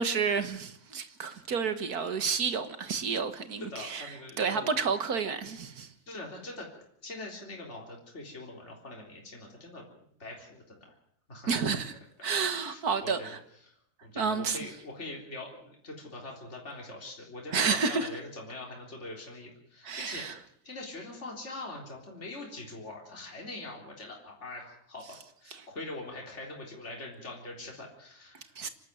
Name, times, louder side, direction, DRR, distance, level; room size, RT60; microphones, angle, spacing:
voice 1, 0.0-4.1 4.4-5.9 11.5-11.9 12.2-13.4 14.2-14.6 17.5-18.1 19.9-20.3 28.6-28.7, right 5 dB, 75° right, 2.0 m, -30 dB
voice 2, 3.6-4.7 6.1-6.7 7.0-9.8 10.2-10.9 11.3-11.8 12.2-13.3 13.6-13.8 14.0-28.6, left 2 dB, 45° left, 4.2 m, -43 dB
26.0 x 12.5 x 9.3 m
omnidirectional pair, 1.7 m